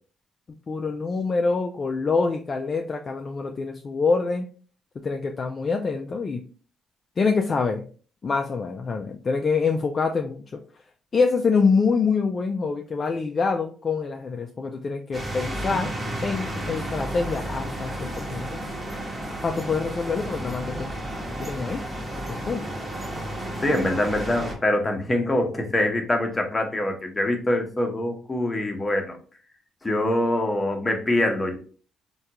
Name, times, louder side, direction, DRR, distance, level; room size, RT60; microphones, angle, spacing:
voice 1, 0.7-4.5 5.0-6.4 7.2-7.9 8.2-10.4 11.1-15.9 16.2-18.6 19.4-20.9 21.4-21.9 22.3-22.7, left 4 dB, 40° left, 3 dB, 0.3 m, -25 dB
sound 1, 15.1-24.6, right 1 dB, 25° right, 1.0 m, -32 dB
voice 2, 23.6-29.2 29.8-31.6, left 1 dB, 20° left, 3 dB, 0.8 m, -24 dB
3.5 x 2.3 x 2.8 m, 0.41 s
cardioid pair, 90°, 0 cm